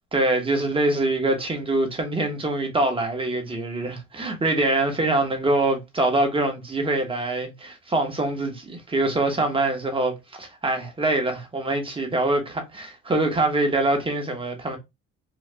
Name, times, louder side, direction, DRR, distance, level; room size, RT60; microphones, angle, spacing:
voice 1, 0.1-14.8, right 2 dB, 20° right, 1.2 m, -24 dB
3.9 x 2.5 x 3.3 m
cardioid pair, 130°, 30 cm